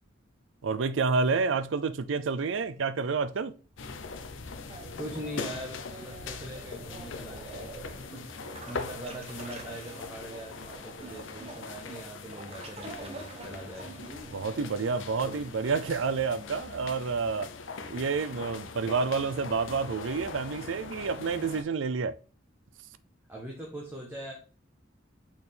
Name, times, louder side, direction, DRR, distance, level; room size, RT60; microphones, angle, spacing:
voice 1, 0.6-3.5 14.3-17.5 17.9-22.2, right 4 dB, 80° right, 0.5 m, -29 dB
sound 1, 3.8-21.6, left 4 dB, 80° left, 0.7 m, -42 dB
sound 2, 4.7-15.5, right 2 dB, 30° right, 1.2 m, -47 dB
voice 2, 4.9-7.8 8.1-8.3 8.7-14.0 15.2-15.4 23.3-24.3, right 1 dB, 10° right, 1.2 m, -42 dB
6.4 x 4.3 x 3.4 m
head